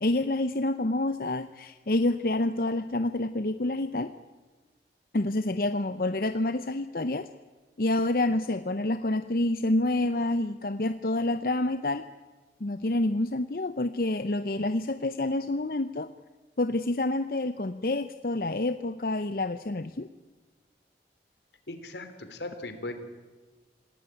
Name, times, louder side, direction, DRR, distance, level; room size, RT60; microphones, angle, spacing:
voice 1, 0.0-4.1 5.1-7.3 7.8-12.0 12.6-16.1 16.6-20.1, left 2 dB, 55° left, 10 dB, 0.7 m, -28 dB
voice 2, 21.7-22.9, left 2 dB, 80° left, 9 dB, 3.2 m, -38 dB
27.5 x 18.0 x 9.2 m, 1.3 s
head